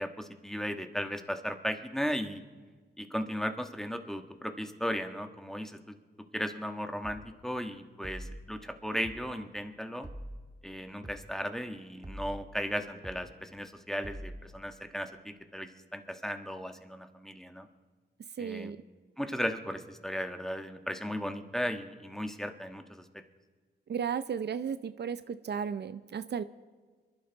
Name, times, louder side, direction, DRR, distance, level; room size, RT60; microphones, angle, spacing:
voice 1, 0.0-2.4 3.0-5.9 6.3-10.1 10.6-17.7 18.4-18.7 19.2-23.0, equal, ahead, 6 dB, 1.4 m, -36 dB
sound 1, 7.0-7.3 8.0-8.4 9.0-9.3 10.0-10.4 11.0-11.3 12.0-12.4 13.0-13.3 14.0-14.4, right 1 dB, 20° right, 1.8 m, -43 dB
voice 2, 18.4-18.8 23.9-26.4, right 7 dB, 70° right, 13 dB, 0.6 m, -34 dB
26.0 x 11.5 x 4.0 m, 1.5 s
cardioid pair, 70°, 18 cm